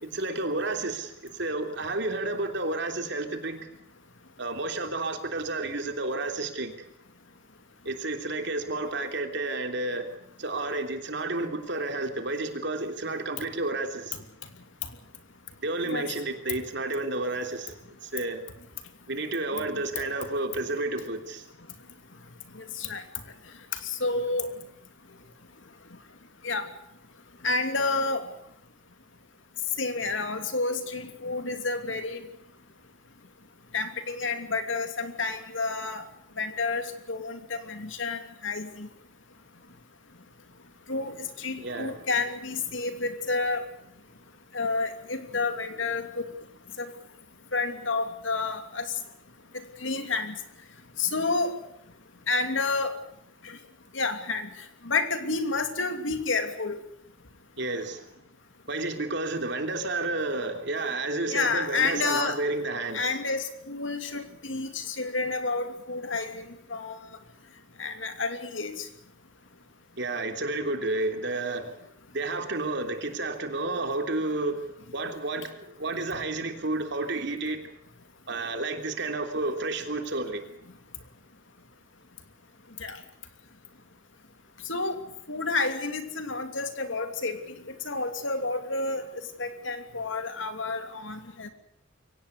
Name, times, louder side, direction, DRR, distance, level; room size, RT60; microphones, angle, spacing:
voice 1, 0.0-3.6 4.4-6.7 7.8-10.1 10.4-14.2 15.6-18.4 19.1-21.4 41.6-41.9 57.6-58.1 58.7-63.2 70.0-71.8 72.1-74.6 74.9-77.7 78.3-80.4, right 2 dB, 60° right, 5 dB, 3.3 m, -31 dB
voice 2, 24.0-24.5 26.4-26.6 27.4-28.2 29.8-32.2 33.7-36.0 36.4-36.8 37.1-38.9 40.9-43.6 44.5-46.2 46.8-46.9 47.5-48.8 49.8-50.3 51.0-51.5 52.3-52.9 53.9-54.5 54.8-56.8 61.3-62.4 62.9-66.4 66.7-66.9 67.8-68.8 82.8-83.0 84.7-85.0 85.3-87.4 87.7-89.0 89.4-91.5, left 3 dB, 70° left, 7 dB, 2.9 m, -29 dB
23.0 x 18.0 x 8.3 m, 0.74 s
head